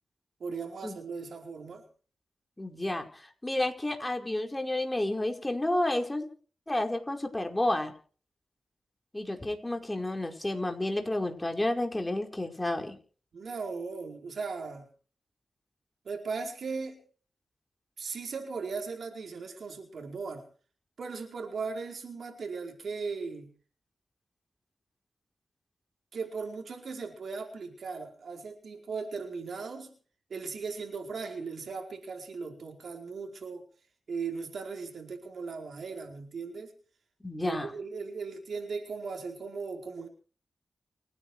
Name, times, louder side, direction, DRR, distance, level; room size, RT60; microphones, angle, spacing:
voice 1, 0.4-1.8 13.3-14.9 16.0-17.0 18.0-20.5 21.0-23.5 26.1-29.9 30.3-33.7 34.1-36.7 37.4-40.1, right 4 dB, 75° right, 3 dB, 4.7 m, -38 dB
voice 2, 2.6-6.3 6.7-7.9 9.1-13.0 37.2-37.7, left 1 dB, 15° left, 4 dB, 4.8 m, -31 dB
29.5 x 9.9 x 4.8 m, 0.41 s
cardioid pair, 55°, 0 cm